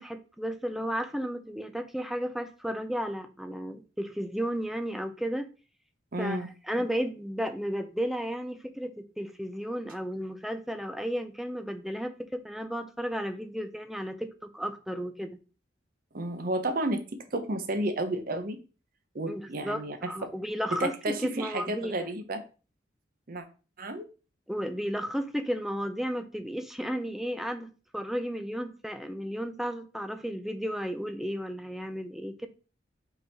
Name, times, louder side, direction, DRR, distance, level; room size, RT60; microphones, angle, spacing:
voice 1, 0.0-5.5 6.2-15.4 19.3-22.1 24.5-32.5, equal, ahead, 8 dB, 0.5 m, -33 dB
voice 2, 6.1-6.5 16.1-17.0 17.3-18.6 19.1-20.1 20.8-22.4 23.3-23.4 23.8-24.0, right 1 dB, 50° right, 8 dB, 0.8 m, -31 dB
5.7 x 4.0 x 4.1 m, 0.35 s
head